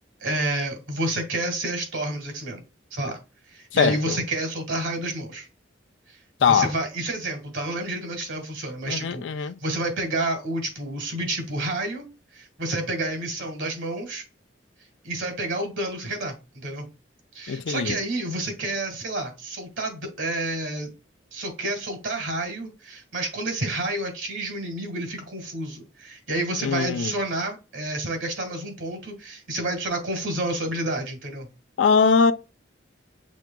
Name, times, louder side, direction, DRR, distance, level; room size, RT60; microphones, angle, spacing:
voice 1, 0.2-2.6 2.9-3.2 3.5-5.5 6.5-12.1 12.3-14.2 15.0-16.9 17.3-20.9 21.3-31.5, right 1 dB, 75° right, 1.7 m, -29 dB
voice 2, 3.7-4.2 6.4-6.7 8.9-9.6 17.5-18.0 26.6-27.1 31.8-32.3, left 5 dB, 75° left, 0.4 m, -21 dB
6.2 x 3.5 x 2.3 m
head